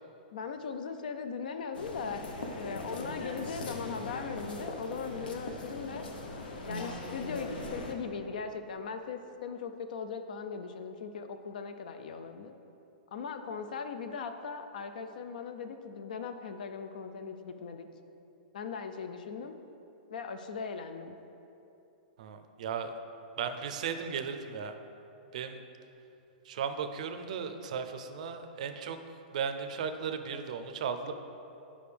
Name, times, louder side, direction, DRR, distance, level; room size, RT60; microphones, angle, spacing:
voice 1, 0.3-2.3 2.6-6.0 6.7-12.5 13.1-17.9 18.5-19.5 20.1-21.2, left 5 dB, 60° left, 8 dB, 0.4 m, -39 dB
sound 1, 1.7-7.9, left 2 dB, 85° left, 0.8 m, -40 dB
voice 2, 22.2-23.0 23.4-24.7 25.3-25.6 26.4-29.0 29.3-31.1, right 6 dB, 50° right, 8 dB, 0.4 m, -36 dB
8.8 x 5.0 x 3.3 m, 2.9 s
supercardioid pair, 175°, 5 cm